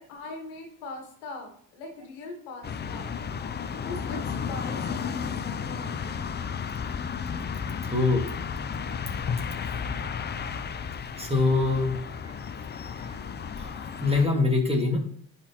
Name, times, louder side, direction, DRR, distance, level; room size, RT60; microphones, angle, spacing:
voice 1, 0.0-3.2 3.7-6.0, left 3 dB, 80° left, 2 dB, 1.8 m, -41 dB
sound 1, 2.6-14.3, left 6 dB, 25° left, 0.4 m, -33 dB
voice 2, 7.8-8.3 9.2-9.3 10.4-10.6 11.2-12.0 12.2-12.3 13.0-13.2 13.6-15.0, left 3 dB, 10° right, 1 dB, 1.9 m, -25 dB
10.5 x 4.2 x 2.9 m, 0.62 s
supercardioid pair, 70°, 49 cm